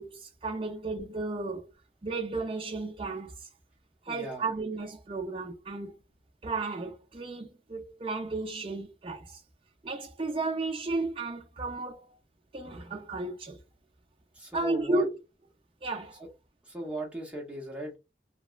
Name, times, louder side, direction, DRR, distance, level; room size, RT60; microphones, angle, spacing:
voice 1, 0.0-1.7 2.0-3.5 4.1-6.0 6.4-9.4 9.8-12.1 12.5-13.6 14.5-15.1 15.8-16.2, right 3 dB, 30° right, 0.5 m, -33 dB
voice 2, 4.1-4.4 14.3-15.0 16.6-18.0, right 1 dB, 5° right, 0.8 m, -38 dB
2.9 x 2.2 x 2.3 m
head